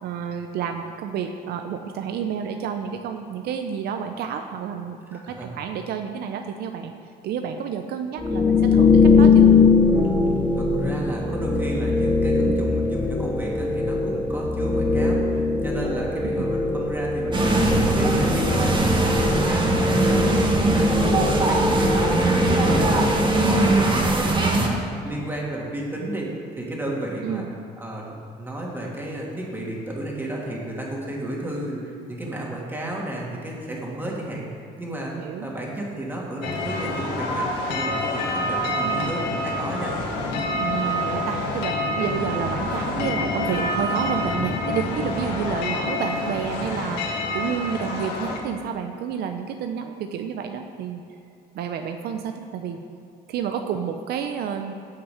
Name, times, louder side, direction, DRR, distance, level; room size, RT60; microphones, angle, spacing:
voice 1, 0.0-6.9 7.2-9.5 11.5-11.6 16.2-16.3 23.4-24.1 27.2-27.5 35.2-35.5 38.8-39.1 40.6-51.0 51.5-52.8 53.3-54.7, right 7 dB, 70° right, 6 dB, 0.7 m, -30 dB
voice 2, 5.1-5.5 10.6-27.4 27.8-34.5 34.8-35.1 35.4-39.9, right 1 dB, 10° right, -3 dB, 2.7 m, -32 dB
sound 1, 8.2-24.0, left 4 dB, 10° left, 1.0 m, -21 dB
sound 2, 17.3-24.7, right 2 dB, 30° right, 1.9 m, -21 dB
sound 3, 36.4-48.4, left 1 dB, 85° left, 1.8 m, -27 dB
16.5 x 5.9 x 5.1 m, 2.6 s
cardioid pair, 110°, 17 cm